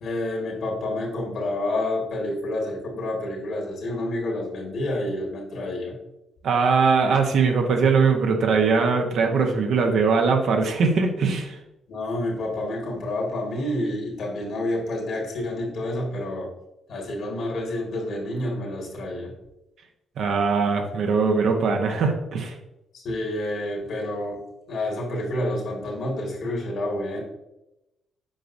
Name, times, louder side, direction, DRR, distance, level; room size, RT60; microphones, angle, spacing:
voice 1, 0.0-6.0 11.9-16.5 16.9-19.3 22.9-27.2, left 1 dB, 65° left, -1 dB, 2.0 m, -29 dB
voice 2, 6.4-11.5 20.2-22.5, right 5 dB, 70° right, 3 dB, 1.1 m, -21 dB
7.6 x 5.2 x 2.7 m, 0.91 s
cardioid pair, 90°, 0 cm